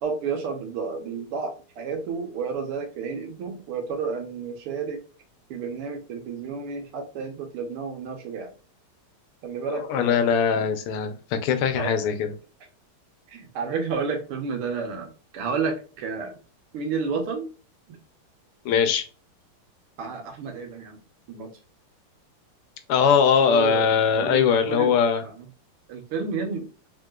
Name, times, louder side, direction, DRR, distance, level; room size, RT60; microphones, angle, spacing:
voice 1, 0.0-5.0 5.5-8.5 9.4-10.3 11.8-11.9 13.3-16.4 16.7-17.5 17.9-18.0 20.0-21.0 21.3-21.5 23.4-25.0 25.2-25.5 25.9-26.7, right 5 dB, 85° right, 4 dB, 1.9 m, -31 dB
voice 2, 9.7-12.3 18.6-19.0 22.9-25.2, left 7 dB, 85° left, 8 dB, 1.6 m, -21 dB
3.7 x 3.6 x 2.3 m, 0.36 s
omnidirectional pair, 2.4 m